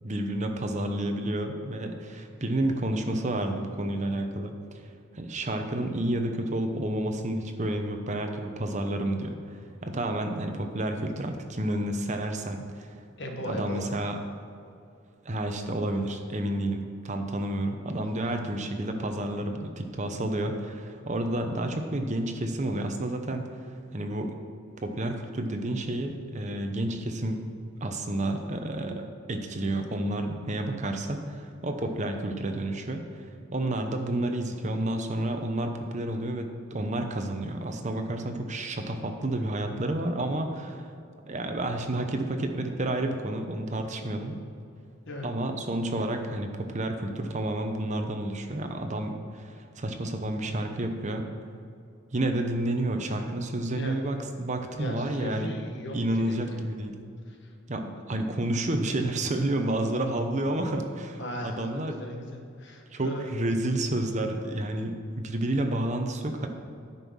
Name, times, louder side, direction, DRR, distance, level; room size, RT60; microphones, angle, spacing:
voice 1, 0.0-4.5 5.1-12.9 13.4-14.2 15.2-23.5 23.9-24.3 24.8-27.4 27.8-33.2 33.5-40.9 41.3-44.3 45.2-51.3 52.1-55.5 55.9-57.0 57.7-62.0 62.9-66.5, right 1 dB, 35° right, 5 dB, 0.8 m, -30 dB
voice 2, 13.2-13.8 18.2-18.5 45.1-45.3 53.8-54.0 54.8-56.7 57.3-57.4 61.2-63.3, equal, 60° left, 2 dB, 1.3 m, -37 dB
9.7 x 5.5 x 6.3 m, 2.5 s
head